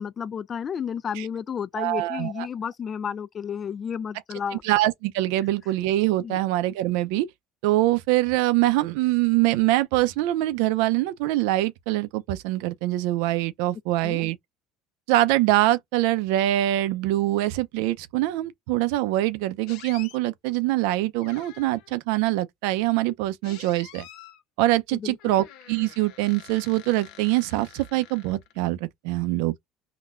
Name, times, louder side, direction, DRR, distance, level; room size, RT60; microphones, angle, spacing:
voice 1, 0.0-4.6 6.2-6.4 14.0-14.3 24.9-25.3, left 7 dB, 35° left, 0.3 m, -32 dB
voice 2, 1.8-2.5 4.6-7.3 7.6-14.4 15.1-24.1 24.6-29.6, right 16 dB, 80° right, 0.5 m, -24 dB
sound 1, 19.7-20.2 21.2-22.0 23.4-24.4 25.2-28.6, left 11 dB, 70° left, 0.7 m, -47 dB
3.8 x 2.2 x 2.4 m
supercardioid pair, 110°, 0 cm